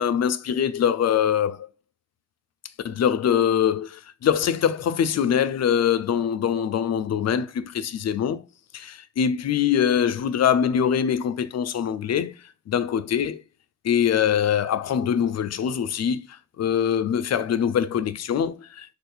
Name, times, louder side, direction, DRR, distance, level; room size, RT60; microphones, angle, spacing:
voice 1, 0.0-1.7 2.8-8.4 8.7-12.3 12.7-13.4 13.8-16.3 16.6-18.9, left 8 dB, 45° left, 0.5 m, -23 dB
3.1 x 2.4 x 4.3 m
supercardioid pair, 60°, 37 cm